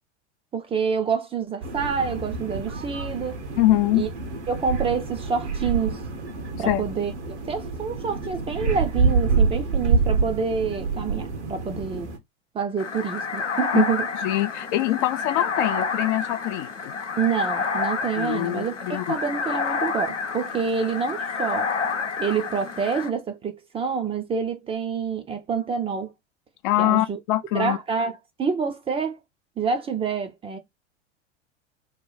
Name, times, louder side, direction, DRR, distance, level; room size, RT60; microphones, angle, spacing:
voice 1, 0.5-3.4 3.9-4.1 4.5-6.0 6.6-7.1 7.5-12.1 12.5-14.1 17.2-18.7 19.1-21.7 22.2-26.1 26.8-27.2 27.5-29.2 29.6-30.6, right 6 dB, 15° right, 0.5 m, -27 dB
sound 1, 1.6-12.2, right 4 dB, 75° right, 1.2 m, -27 dB
voice 2, 3.6-4.0 6.7-6.8 13.7-13.8 14.2-16.9 18.2-19.1 26.6-27.8, left 15 dB, 45° left, 0.4 m, -23 dB
sound 2, 12.8-23.1, left 5 dB, 90° left, 0.8 m, -29 dB
3.1 x 2.3 x 3.8 m
figure-of-eight pair, 90°, 35 cm